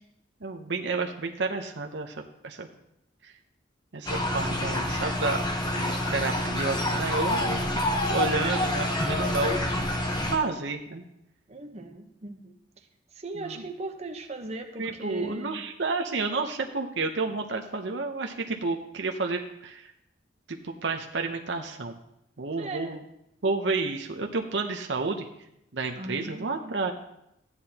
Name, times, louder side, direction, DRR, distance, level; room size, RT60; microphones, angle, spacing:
voice 1, 0.4-2.7 3.9-5.4 5.8-7.6 8.1-9.6 10.3-11.0 13.4-13.6 14.8-19.9 20.5-21.9 22.4-23.0 23.4-25.3 25.7-26.9, right 3 dB, 70° right, 3 dB, 0.8 m, -30 dB
sound 1, 4.1-10.4, left 1 dB, 25° left, 1.0 m, -27 dB
voice 2, 11.5-15.6 22.6-23.0 25.9-26.7, right 2 dB, 35° right, 3 dB, 0.9 m, -39 dB
14.0 x 9.7 x 2.9 m, 0.81 s
head